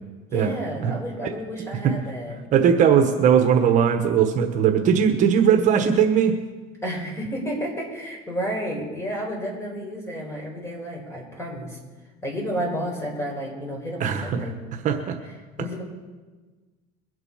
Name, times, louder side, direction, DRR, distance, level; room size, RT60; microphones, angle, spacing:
voice 1, 0.3-2.4 6.8-11.8 12.2-14.6 15.6-15.8, equal, 15° left, -1 dB, 5.1 m, -31 dB
voice 2, 2.5-6.3 14.0-14.5 14.8-15.2, right 8 dB, 45° right, 5 dB, 1.2 m, -19 dB
22.5 x 8.0 x 5.7 m, 1.3 s
cardioid pair, 130°, 17 cm